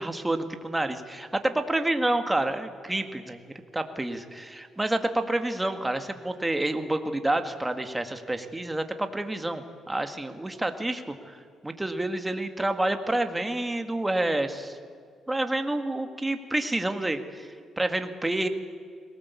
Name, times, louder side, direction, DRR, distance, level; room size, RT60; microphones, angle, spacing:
voice 1, 0.0-3.4 3.7-14.8 15.3-18.5, right 1 dB, 10° right, 7 dB, 1.9 m, -29 dB
22.0 x 18.5 x 8.5 m, 2.2 s
cardioid pair, 90°, 0 cm